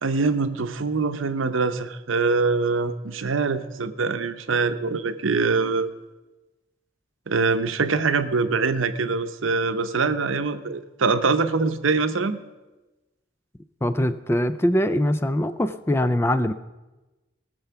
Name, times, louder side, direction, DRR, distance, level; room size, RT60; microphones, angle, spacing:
voice 1, 0.0-5.9 7.3-12.4, right 4 dB, 80° right, 10 dB, 0.7 m, -24 dB
voice 2, 13.8-16.5, left 1 dB, 10° left, 12 dB, 0.4 m, -22 dB
19.0 x 6.9 x 5.7 m, 1.1 s
head